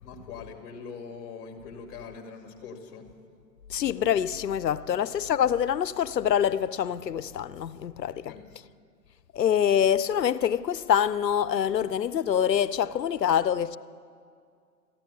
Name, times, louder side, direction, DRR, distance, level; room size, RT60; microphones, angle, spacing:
voice 1, 0.0-3.1 4.9-5.0 8.3-8.4, left 5 dB, 30° left, 2.2 m, -42 dB
voice 2, 3.7-8.3 9.3-13.8, left 9 dB, 90° left, 0.7 m, -25 dB
14.5 x 10.5 x 9.4 m
hypercardioid pair, 130°, 48 cm